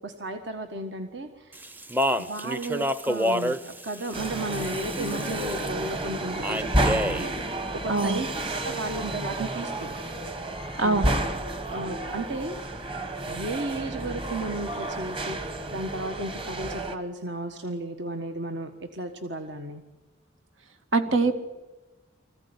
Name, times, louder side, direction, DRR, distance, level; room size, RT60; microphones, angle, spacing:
voice 1, 0.0-1.6 2.2-9.9 10.8-11.1 11.7-12.8 13.3-15.4 15.7-19.8, right 2 dB, 60° right, 6 dB, 1.5 m, -34 dB
Speech, 1.5-5.7 6.4-7.3, equal, 10° right, 0.7 m, -29 dB
sound 1, 4.1-17.0, right 1 dB, 25° right, 1.6 m, -31 dB
voice 2, 10.8-11.1 20.9-21.4, right 3 dB, 85° right, 7 dB, 2.4 m, -23 dB
25.5 x 15.5 x 9.8 m, 1.2 s
head